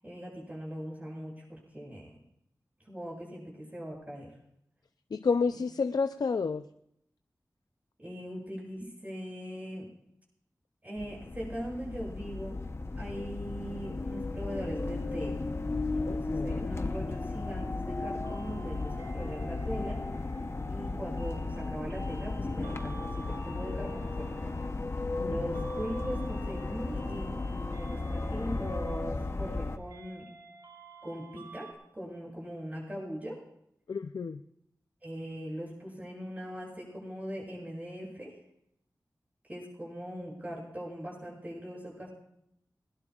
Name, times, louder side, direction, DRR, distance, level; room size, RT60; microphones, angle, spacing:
voice 1, 0.0-2.2 2.8-4.3 8.0-9.9 10.8-12.6 12.9-15.4 15.9-20.0 20.6-24.4 25.2-30.3 31.0-31.7 31.9-33.4 35.0-38.3 39.4-42.1, equal, 25° right, -3 dB, 7.8 m, -40 dB
voice 2, 5.1-6.7 16.1-16.7 25.2-25.7 33.9-34.4, left 5 dB, 80° left, 8 dB, 0.5 m, -31 dB
sound 1, 11.0-29.8, left 3 dB, 40° left, 0.9 m, -35 dB
sound 2, 18.2-31.7, right 3 dB, 85° right, 4.4 m, -52 dB
21.0 x 20.5 x 2.4 m, 0.75 s
wide cardioid pair, 95°, 7 cm